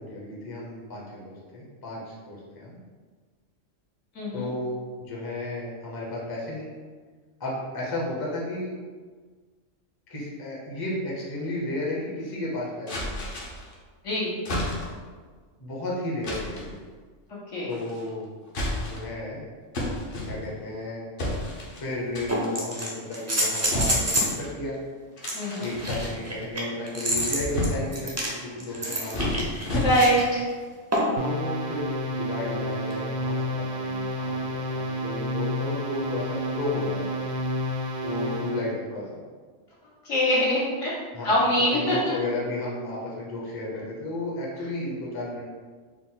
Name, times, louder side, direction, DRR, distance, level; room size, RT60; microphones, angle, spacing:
voice 1, 0.0-2.8 4.3-6.7 7.4-8.7 10.1-13.3 15.6-16.7 17.6-18.3 18.8-19.5 20.2-21.1 21.8-24.8 25.6-29.3 31.2-37.3 38.0-39.1 41.1-41.4 41.7-45.4, left 1 dB, 25° left, -5 dB, 0.6 m, -33 dB
voice 2, 4.2-4.5 14.0-14.3 17.5-17.7 25.3-25.7 28.8-28.9 29.3-29.4 29.8-30.4 40.1-40.9 41.2-42.0, equal, 75° left, -8 dB, 1.6 m, -23 dB
sound 1, 12.9-13.7 14.5-15.1 16.2-16.7 17.7-18.1 18.5-19.2 19.7-20.7 21.2-21.8 22.2-22.6 23.7-24.6 25.2-26.4 26.9-28.0 28.7-30.3, left 1 dB, 50° left, 0.9 m, -31 dB
sound 2, 21.2-21.3 22.3-24.4 25.2-30.2 30.9-31.3 32.9-33.0, equal, 25° right, 0.3 m, -28 dB
sound 3, 31.2-38.7, equal, 80° right, 1.0 m, -30 dB
4.4 x 2.0 x 3.8 m, 1.5 s
omnidirectional pair, 1.3 m